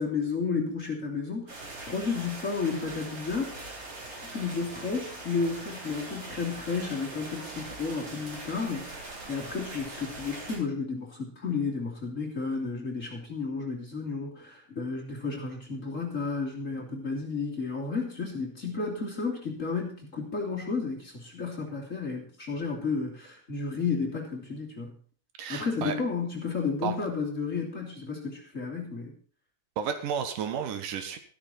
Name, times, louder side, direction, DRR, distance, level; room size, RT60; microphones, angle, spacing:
voice 1, 0.0-3.6 4.2-9.0 9.3-24.9 25.5-29.1, left 4 dB, 25° left, -2 dB, 3.1 m, -32 dB
sound 1, 1.5-10.6, right 2 dB, 45° right, 4.5 m, -42 dB
voice 2, 25.4-25.9 26.8-27.0 29.8-31.2, right 7 dB, 80° right, 8 dB, 3.0 m, -32 dB
14.0 x 13.0 x 4.3 m, 0.43 s
omnidirectional pair, 3.7 m